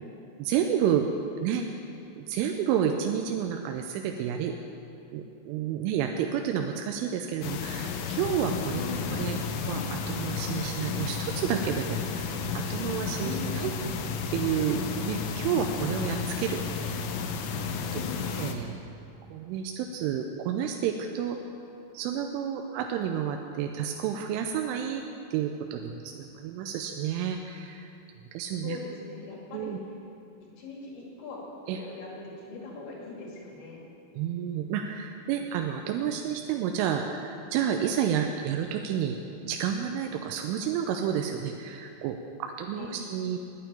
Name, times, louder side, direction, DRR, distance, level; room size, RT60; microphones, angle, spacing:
voice 1, 0.4-1.1 1.4-1.7 2.2-4.5 5.1-8.8 9.2-9.4 9.7-12.3 12.5-13.7 14.3-17.1 17.4-17.6 17.9-18.0 18.4-18.7 19.3-21.4 21.9-25.0 25.3-27.9 28.3-28.8 29.5-29.8 31.7-31.8 34.2-39.2 39.4-43.4, right 8 dB, 90° right, 4 dB, 3.2 m, -30 dB
sound 1, 7.4-18.6, left 5 dB, 75° left, 2.8 m, -32 dB
voice 2, 28.6-29.8 30.6-33.8 42.8-43.0, left 4 dB, 60° left, -3 dB, 3.9 m, -40 dB
9.2 x 9.1 x 9.9 m, 2.7 s
omnidirectional pair, 5.5 m